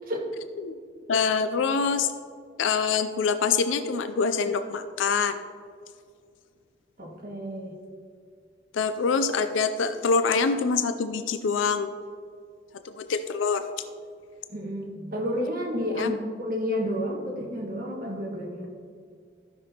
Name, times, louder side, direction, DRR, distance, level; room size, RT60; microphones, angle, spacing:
voice 1, 1.1-2.1 2.6-5.4 8.7-11.9 12.8-13.8 16.0-16.1, left 5 dB, 80° left, 9 dB, 0.4 m, -25 dB
voice 2, 7.0-7.7 14.5-18.7, equal, 50° right, -2 dB, 1.6 m, -31 dB
14.5 x 6.1 x 2.9 m, 2.2 s
head